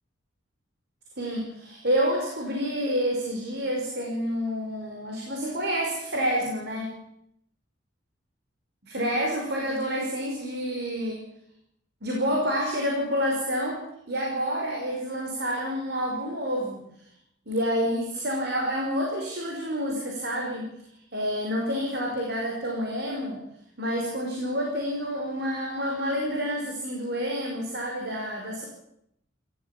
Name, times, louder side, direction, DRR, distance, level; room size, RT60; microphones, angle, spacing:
voice 1, 1.2-6.9 8.8-11.2 12.0-13.8 14.1-16.9 17.5-20.7 21.1-23.4 23.8-28.6, equal, 60° right, 0 dB, 5.6 m, -28 dB
29.5 x 15.0 x 8.6 m, 0.75 s
head